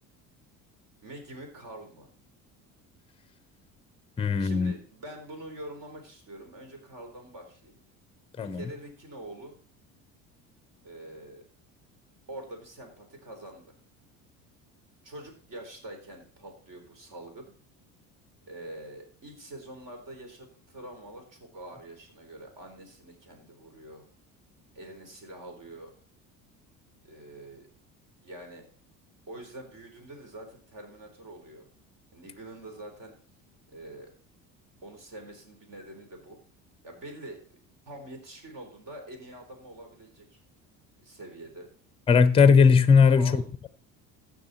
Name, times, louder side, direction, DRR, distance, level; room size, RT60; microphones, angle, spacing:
voice 1, 1.0-2.1 4.4-7.8 8.4-9.6 10.8-11.4 12.3-13.7 15.0-17.5 18.5-24.0 24.7-25.9 27.0-27.7 28.2-28.6 29.3-31.7 32.1-33.1 33.7-34.1 34.8-36.4 36.8-37.4 37.9-40.4 41.0-41.7 43.1-43.4, right 1 dB, 50° right, 4.0 m, -45 dB
voice 2, 4.2-4.7 8.4-8.6 42.1-43.7, left 5 dB, 15° left, 0.6 m, -19 dB
14.5 x 6.4 x 4.2 m
hypercardioid pair, 70°, 41 cm